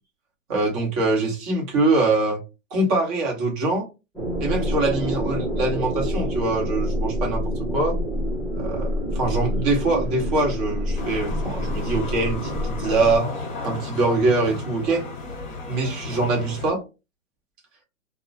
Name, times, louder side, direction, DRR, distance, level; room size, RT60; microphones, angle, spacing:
voice 1, 0.5-2.4 2.7-3.9 4.4-8.0 8.5-8.9 9.2-13.3 13.6-15.1 15.7-16.8, right 2 dB, 30° right, 1.0 m, -23 dB
sound 1, 4.1-13.2, equal, ahead, 0.5 m, -27 dB
sound 2, 10.9-16.7, left 3 dB, 20° left, 0.8 m, -34 dB
2.3 x 2.1 x 2.6 m
hypercardioid pair, 135°, 39 cm